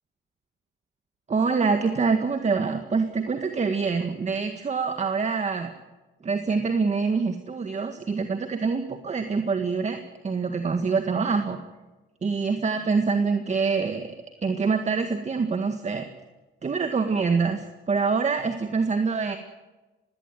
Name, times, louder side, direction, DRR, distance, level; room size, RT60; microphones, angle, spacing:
voice 1, 1.3-5.7 6.2-11.6 12.2-14.2 14.4-16.1 16.6-19.4, right 4 dB, 35° right, 7 dB, 1.9 m, -25 dB
20.5 x 17.0 x 9.3 m, 1.1 s
cardioid pair, 90°, 20 cm